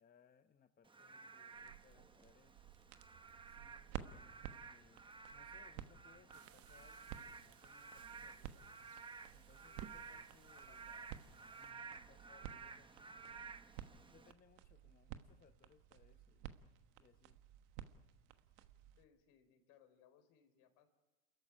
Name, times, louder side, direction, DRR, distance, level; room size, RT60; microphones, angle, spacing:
voice 1, 0.0-2.6 3.4-5.0 5.3-8.7 9.3-11.0 11.6-13.4 14.0-16.5 17.0-17.4, left 7 dB, 25° left, 8 dB, 0.9 m, -69 dB
Frog / Rain, 0.8-14.3, right 5 dB, 15° right, 1.0 m, -55 dB
sound 1, 1.5-19.0, right 11 dB, 85° right, 1.4 m, -54 dB
sound 2, 6.3-11.7, right 10 dB, 40° right, 0.9 m, -63 dB
voice 2, 9.6-10.2 10.5-11.1 19.0-20.9, left 9 dB, 70° left, 7 dB, 4.2 m, -69 dB
28.0 x 14.5 x 10.0 m, 1.2 s
supercardioid pair, 110°, 34 cm